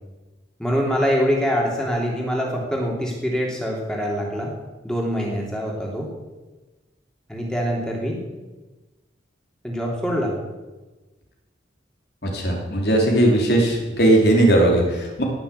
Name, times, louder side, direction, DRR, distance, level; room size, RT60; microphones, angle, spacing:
voice 1, 0.6-4.5 4.8-6.1 7.3-8.2 9.6-10.3, equal, 5° left, -2 dB, 3.1 m, -24 dB
voice 2, 12.2-15.2, right 1 dB, 60° left, 0 dB, 3.4 m, -18 dB
18.0 x 7.0 x 8.4 m, 1.2 s
head